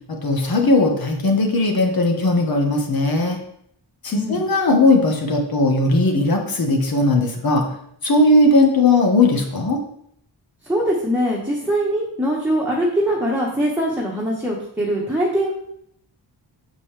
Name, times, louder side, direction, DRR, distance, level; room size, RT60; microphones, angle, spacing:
voice 1, 0.2-3.4 4.0-7.6 8.0-9.8, left 2 dB, 60° left, 2 dB, 1.5 m, -18 dB
voice 2, 10.6-15.5, right 1 dB, 5° right, -5 dB, 1.2 m, -22 dB
7.5 x 5.3 x 3.4 m, 0.70 s
wide cardioid pair, 140°, 41 cm